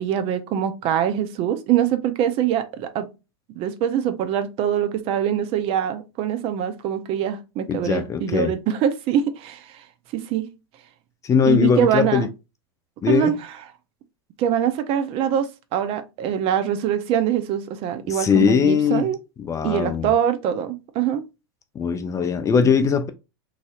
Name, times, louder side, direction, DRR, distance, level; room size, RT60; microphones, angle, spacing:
voice 1, 0.0-3.1 3.6-9.8 10.1-10.5 11.5-12.3 13.1-13.4 14.4-19.2 19.6-21.2, right 9 dB, 45° right, 0.6 m, -23 dB
voice 2, 7.7-8.5 11.2-12.3 13.0-13.4 18.1-19.0 19.4-20.1 21.8-23.1, left 6 dB, 25° left, 0.4 m, -20 dB
3.2 x 2.6 x 2.3 m
hypercardioid pair, 100°, 13 cm